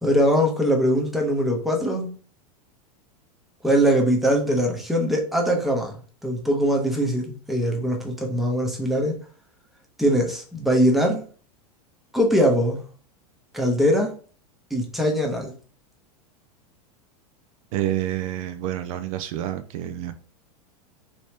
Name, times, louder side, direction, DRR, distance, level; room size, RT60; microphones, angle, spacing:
voice 1, 0.0-2.1 3.6-9.2 10.0-11.2 12.1-12.8 13.5-14.1 14.7-15.5, equal, ahead, 1 dB, 0.9 m, -22 dB
voice 2, 17.7-20.1, right 12 dB, 60° right, 10 dB, 0.4 m, -28 dB
3.0 x 2.7 x 3.2 m, 0.40 s
hypercardioid pair, 110°, 20 cm